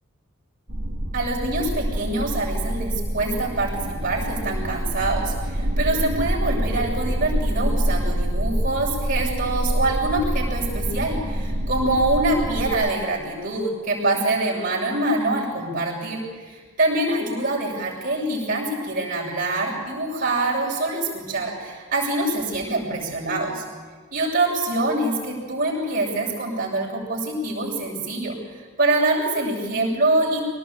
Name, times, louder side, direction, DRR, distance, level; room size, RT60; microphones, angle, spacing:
sound 1, 0.7-12.7, equal, 70° right, 2.8 m, -26 dB
voice 1, 1.1-16.5 16.8-23.6 24.1-30.4, right 2 dB, 40° right, -4 dB, 7.0 m, -25 dB
23.0 x 18.5 x 8.6 m, 1.5 s
head